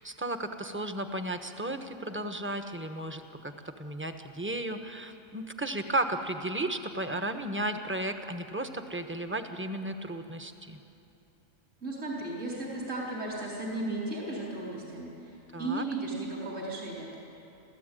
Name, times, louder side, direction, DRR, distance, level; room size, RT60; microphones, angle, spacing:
voice 1, 0.0-10.8 15.5-15.8, right 1 dB, 10° right, 6 dB, 1.1 m, -34 dB
voice 2, 11.8-15.3 15.6-17.2, right 2 dB, 65° right, -4 dB, 4.4 m, -35 dB
29.0 x 14.5 x 9.2 m, 2.9 s
omnidirectional pair, 1.4 m